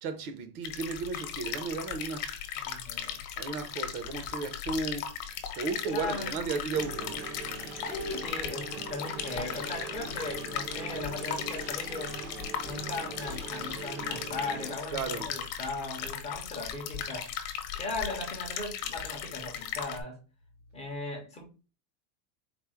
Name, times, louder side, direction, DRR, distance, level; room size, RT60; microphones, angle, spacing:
voice 1, 0.0-2.4 3.4-5.1 5.5-7.3 14.9-15.3, right 4 dB, 75° right, 1.0 m, -34 dB
sound 1, 0.6-20.0, left 9 dB, 50° left, 0.9 m, -37 dB
voice 2, 2.6-3.2 5.9-6.5 7.8-12.2 12.6-17.3 17.7-20.2 20.7-21.4, left 2 dB, 15° left, 0.5 m, -38 dB
sound 2, 6.7-14.7, right 5 dB, 35° right, 0.5 m, -42 dB
4.2 x 2.1 x 4.6 m
supercardioid pair, 170°, 45 cm